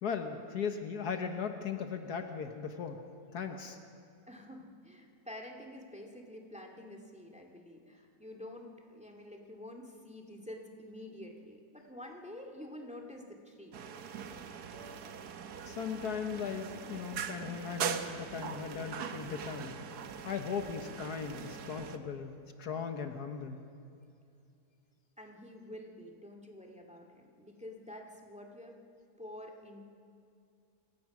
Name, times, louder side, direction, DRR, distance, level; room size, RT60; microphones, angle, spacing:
voice 1, 0.0-3.0 3.3-3.8 15.6-19.8 20.2-23.6, left 6 dB, 70° left, 6 dB, 1.6 m, -38 dB
voice 2, 4.3-13.8 25.2-28.8 29.2-29.9, left 1 dB, 5° right, 2 dB, 2.1 m, -48 dB
sound 1, 13.7-22.0, right 7 dB, 70° right, 1.5 m, -41 dB
28.0 x 17.0 x 6.1 m, 2.5 s
omnidirectional pair, 1.8 m